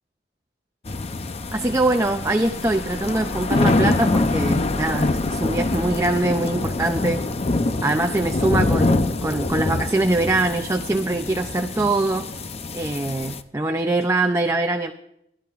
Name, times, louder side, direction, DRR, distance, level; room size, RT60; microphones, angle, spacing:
sound 1, 0.9-13.4, left 2 dB, 35° left, 0.6 m, -25 dB
voice 1, 1.5-7.2 7.8-12.3 12.7-14.9, right 2 dB, 15° right, 5 dB, 0.5 m, -23 dB
21.5 x 12.5 x 2.5 m, 0.77 s
head